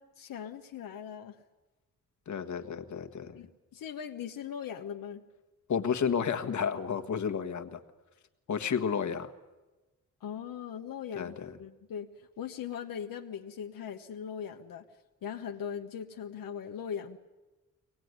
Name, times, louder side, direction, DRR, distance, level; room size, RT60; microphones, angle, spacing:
voice 1, 0.0-1.4 3.3-5.2 10.2-14.8 15.2-17.2, left 8 dB, 85° left, 3 dB, 1.3 m, -40 dB
voice 2, 2.3-3.4 5.7-7.8 8.5-9.3 11.1-11.5, left 7 dB, 60° left, 6 dB, 1.5 m, -31 dB
23.5 x 19.0 x 9.6 m, 1.1 s
cardioid pair, 125°, 33 cm